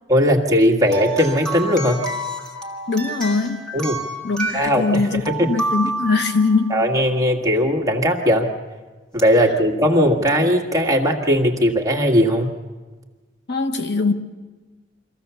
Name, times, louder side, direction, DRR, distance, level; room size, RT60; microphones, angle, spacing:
voice 1, 0.1-2.0 3.7-4.0 4.5-5.5 6.7-8.5 9.1-12.5, equal, 20° right, 1 dB, 1.7 m, -18 dB
sound 1, 0.9-6.8 9.2-9.3 10.3-10.4, right 2 dB, 5° left, 1.8 m, -29 dB
voice 2, 2.9-3.7 4.2-6.8 13.5-14.1, left 4 dB, 65° left, 7 dB, 1.2 m, -21 dB
24.5 x 15.5 x 7.0 m, 1.3 s
head